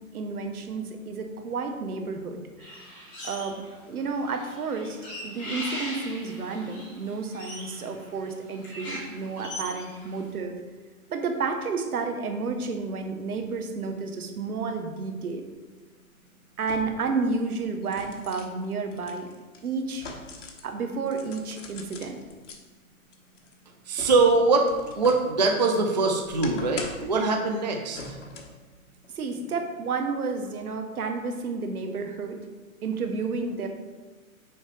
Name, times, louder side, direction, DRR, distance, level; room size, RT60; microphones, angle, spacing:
voice 1, 0.1-5.0 5.2-10.6 11.1-15.4 16.6-19.3 19.6-20.1 20.6-22.2 29.1-32.4 32.8-33.7, right 4 dB, 80° right, 5 dB, 1.3 m, -31 dB
sound 1, 2.6-3.7 4.0-10.2, equal, 10° left, 0.8 m, -40 dB
sound 2, 15.3-15.4 16.6-17.1 17.6-20.7 21.1-22.6 23.1-25.3 25.7-27.2 27.9-28.6 29.0-29.2, left 3 dB, 55° left, 1.2 m, -42 dB
voice 2, 23.9-24.7 24.9-28.2, right 3 dB, 35° right, 2 dB, 0.4 m, -23 dB
6.5 x 4.3 x 4.9 m, 1.3 s
hypercardioid pair, 160°, 44 cm